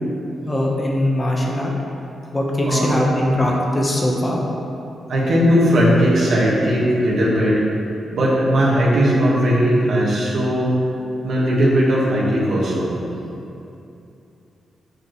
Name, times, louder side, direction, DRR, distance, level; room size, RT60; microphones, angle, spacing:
voice 1, 0.4-1.7 2.3-4.4, left 1 dB, 25° left, -2 dB, 1.0 m, -20 dB
voice 2, 5.1-7.6 8.1-10.7 11.2-12.9, equal, 75° right, -6 dB, 1.6 m, -17 dB
8.3 x 5.0 x 3.2 m, 2.7 s
cardioid pair, 85°, 0 cm